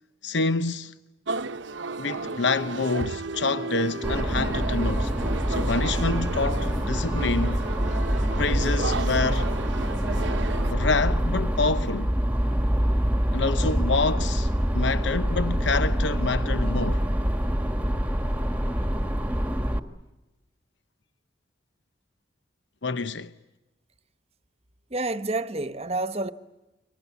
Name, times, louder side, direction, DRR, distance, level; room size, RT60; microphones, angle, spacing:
voice 1, 0.2-0.9 2.0-5.1 5.5-7.6 8.4-9.5 10.7-12.1 13.3-17.1 22.8-23.3, left 3 dB, 80° left, 0.9 m, -27 dB
sound 1, 1.3-10.7, right 3 dB, 90° right, 0.9 m, -33 dB
sound 2, 4.0-19.8, equal, 10° right, 1.5 m, -25 dB
voice 2, 24.9-26.3, right 2 dB, 35° right, 1.1 m, -28 dB
29.0 x 24.5 x 8.3 m
head